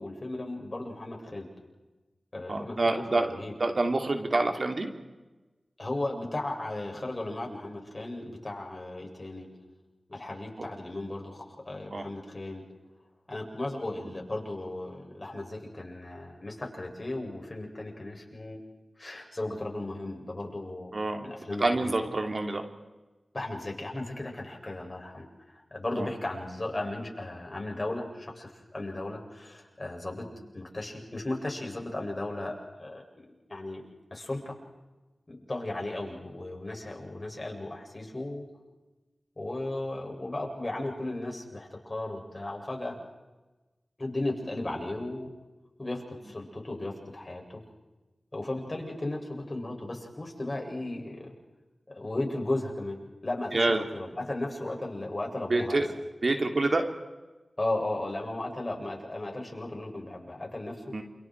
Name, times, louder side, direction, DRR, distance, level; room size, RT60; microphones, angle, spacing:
voice 1, 0.0-1.5 2.3-3.5 5.8-9.5 10.1-12.6 13.3-18.6 19.0-20.9 21.2-21.9 23.3-25.3 25.5-30.3 30.5-34.6 35.3-38.4 39.4-43.0 44.0-45.3 45.8-47.6 48.3-51.3 51.9-55.8 57.6-60.8, left 2 dB, 35° left, 0 dB, 7.3 m, -35 dB
voice 2, 2.5-4.9 11.9-12.0 20.9-21.2 21.6-22.6 26.0-26.1 53.5-53.8 55.5-55.9 56.2-56.8 60.9-61.0, right 2 dB, 55° right, 4 dB, 2.9 m, -27 dB
29.0 x 28.5 x 4.7 m, 1.1 s
wide cardioid pair, 55°, 0 cm